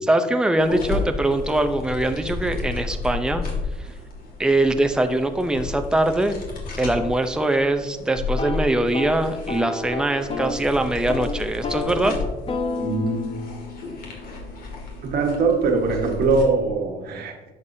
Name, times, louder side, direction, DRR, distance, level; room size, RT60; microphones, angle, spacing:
voice 1, 0.1-3.5 3.8-3.9 4.4-6.4 6.8-12.2, right 1 dB, 5° right, 7 dB, 0.6 m, -22 dB
sound 1, 0.6-16.4, left 3 dB, 60° left, 2.2 m, -33 dB
sound 2, 8.3-10.6 10.9-11.3 11.6-15.5, left 3 dB, 35° left, 1.0 m, -31 dB
voice 2, 12.8-13.2 15.0-17.3, right 4 dB, 70° right, 3 dB, 1.5 m, -22 dB
10.5 x 6.7 x 2.7 m, 1.1 s
cardioid pair, 110°, 17 cm